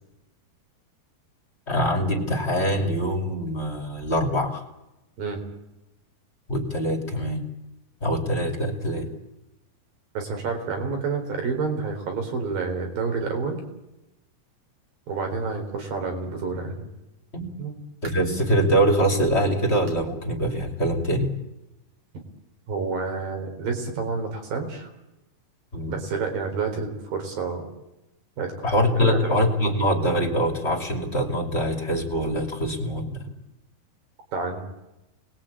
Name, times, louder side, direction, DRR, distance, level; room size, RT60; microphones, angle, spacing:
voice 1, 1.7-4.6 6.5-7.5 8.0-9.1 17.3-17.5 18.0-21.3 25.7-26.0 28.6-33.2, equal, 20° left, 2 dB, 2.5 m, -24 dB
voice 2, 10.1-13.6 15.1-16.9 17.6-17.8 22.7-24.9 25.9-27.7 28.4-28.5 29.0-29.3 34.3-34.6, right 4 dB, 60° right, 4 dB, 5.8 m, -29 dB
sound 1, 17.6-18.5 19.0-19.1 19.9-20.1 20.5-20.6 21.1-21.2 22.2-22.3, right 4 dB, 40° right, 4.8 m, -47 dB
28.5 x 20.5 x 8.7 m, 0.95 s
omnidirectional pair, 4.6 m